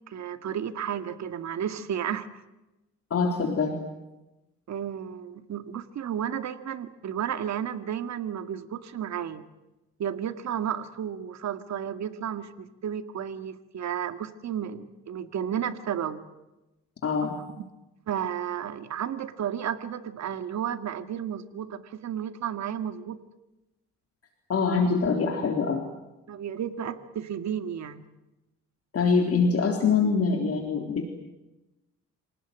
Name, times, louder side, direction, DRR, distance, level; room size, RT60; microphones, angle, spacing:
voice 1, 0.1-2.3 4.7-9.4 10.0-16.2 17.2-17.7 18.1-23.2 26.3-28.0, right 9 dB, 65° right, 10 dB, 2.1 m, -33 dB
voice 2, 3.1-3.8 17.0-17.3 24.5-25.9 28.9-31.1, left 5 dB, 50° left, 4 dB, 3.7 m, -24 dB
27.0 x 18.5 x 9.4 m, 0.98 s
cardioid pair, 90°, 30 cm